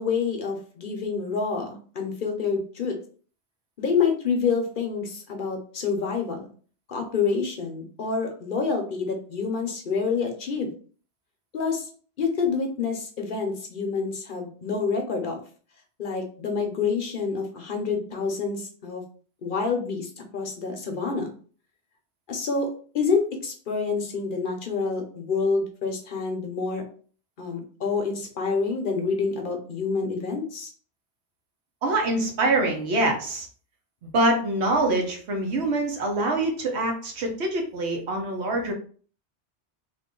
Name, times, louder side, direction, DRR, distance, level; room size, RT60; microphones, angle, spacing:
voice 1, 0.0-2.9 3.8-6.5 6.9-10.7 11.5-11.9 12.2-15.4 16.0-19.0 19.4-21.3 22.3-26.8 27.4-30.7, left 5 dB, 55° left, 3 dB, 0.8 m, -27 dB
voice 2, 31.8-33.5 34.0-38.7, right 2 dB, 75° right, 2 dB, 1.1 m, -25 dB
3.0 x 2.5 x 3.6 m, 0.43 s
omnidirectional pair, 1.1 m